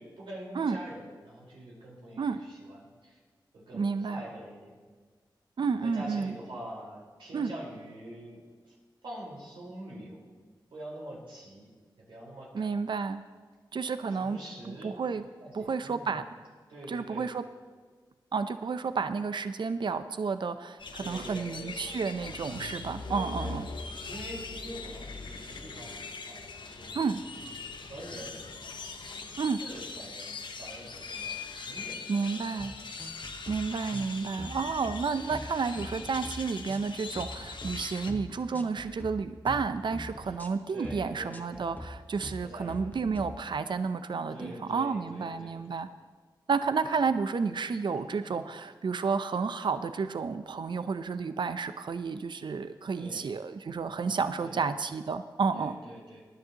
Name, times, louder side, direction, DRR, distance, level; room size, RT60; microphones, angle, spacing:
voice 1, 0.0-3.2 3.5-4.8 5.8-8.4 8.7-8.8 9.0-10.2 10.7-11.7 12.0-12.7 14.1-15.0 15.4-16.3 16.7-17.3 21.0-22.3 23.0-23.8 24.1-27.1 27.8-28.4 29.6-31.4 31.6-32.8 40.2-40.4 40.7-41.6 42.4-42.8 44.3-45.6 47.9-48.4 53.0-53.3 54.4-54.7 55.5-56.2, right 1 dB, 90° right, -5 dB, 4.4 m, -45 dB
voice 2, 3.7-4.2 5.6-6.3 7.3-7.5 12.5-13.2 13.7-15.3 15.5-16.2 16.9-17.4 18.3-23.7 26.9-27.2 29.4-29.6 32.1-32.7 33.5-45.9 46.5-55.8, right 5 dB, 65° right, 11 dB, 0.6 m, -31 dB
sound 1, 20.8-38.1, left 4 dB, 65° left, 0.9 m, -41 dB
sound 2, 32.6-32.7 33.0-33.6 33.9-34.1 34.4-35.0 35.3-35.5 35.8-36.3 36.7-36.9 37.1-37.7 38.1-38.3 38.5-39.1 39.5-39.6 39.9-40.5 40.8-41.0 41.3-41.9 42.2-42.4 42.7-43.3, left 1 dB, 20° left, 1.3 m, -42 dB
19.0 x 10.5 x 2.9 m, 1.5 s
cardioid pair, 45°, 9 cm